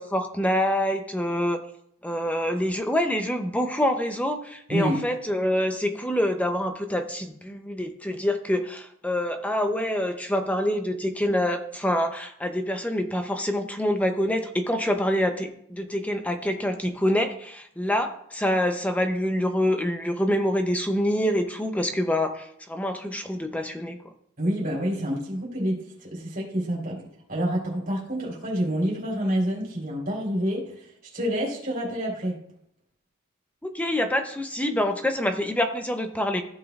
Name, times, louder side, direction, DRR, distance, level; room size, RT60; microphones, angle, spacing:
voice 1, 0.0-1.6 2.0-24.0 33.6-36.4, left 1 dB, 5° left, 6 dB, 0.6 m, -26 dB
voice 2, 24.4-27.0 27.3-32.3, equal, 40° right, -4 dB, 3.5 m, -28 dB
14.5 x 7.4 x 2.4 m, 0.70 s
head